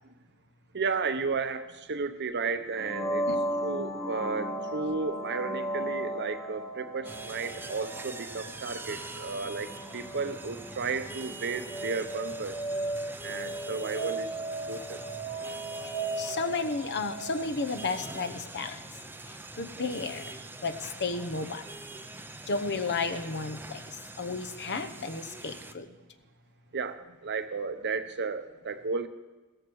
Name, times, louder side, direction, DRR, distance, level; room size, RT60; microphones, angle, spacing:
voice 1, 0.7-3.2 3.6-12.6 13.2-14.4 14.7-15.0 26.7-29.1, right 4 dB, 55° right, 10 dB, 0.9 m, -33 dB
sound 1, 2.7-18.4, right 1 dB, 20° left, 1.4 m, -36 dB
sound 2, 7.0-25.7, right 2 dB, 10° right, 0.6 m, -44 dB
voice 2, 15.8-18.8 19.3-20.4 20.6-21.6 22.5-25.9, left 4 dB, 50° left, 8 dB, 1.0 m, -33 dB
16.5 x 14.0 x 4.8 m, 1.2 s
head